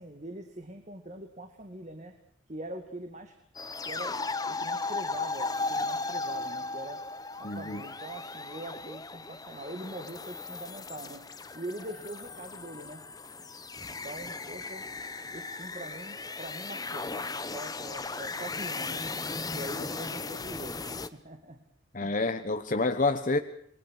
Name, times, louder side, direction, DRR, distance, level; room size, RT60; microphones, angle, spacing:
voice 1, 0.0-2.1 2.5-3.3 3.9-4.2 4.5-7.0 7.4-11.2 11.5-13.0 14.0-14.8 15.3-19.0 19.5-21.6 22.0-22.1, right 1 dB, 35° right, 5 dB, 2.2 m, -43 dB
sound 1, 3.5-21.1, left 3 dB, 20° left, 1.0 m, -36 dB
voice 2, 7.4-7.8 21.9-23.4, left 3 dB, 40° left, 8 dB, 1.1 m, -28 dB
28.0 x 21.5 x 6.5 m, 0.64 s
head